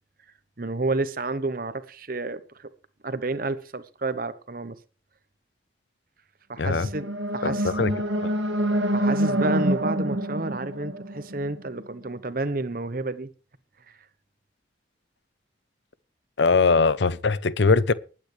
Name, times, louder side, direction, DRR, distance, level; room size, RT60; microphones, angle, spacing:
voice 1, 0.6-2.7 3.0-4.7 6.5-7.7 8.9-13.3, right 2 dB, 50° right, 0.9 m, -30 dB
voice 2, 6.6-6.9 7.4-7.9 16.4-17.9, left 4 dB, 70° left, 0.7 m, -21 dB
sound 1, 6.7-11.8, right 1 dB, 75° right, 1.6 m, -26 dB
20.0 x 9.0 x 3.3 m
head